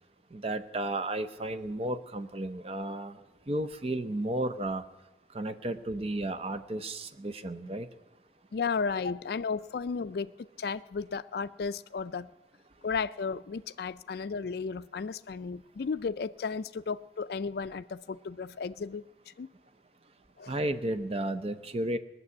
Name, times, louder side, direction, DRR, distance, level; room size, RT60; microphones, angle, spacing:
voice 1, 0.3-3.2 3.5-4.8 5.3-7.9 20.5-22.0, right 1 dB, 35° right, 10 dB, 0.7 m, -33 dB
voice 2, 8.5-12.3 12.8-19.5 20.4-20.5, left 5 dB, 55° left, 11 dB, 0.4 m, -34 dB
18.0 x 6.8 x 9.6 m, 1.1 s
head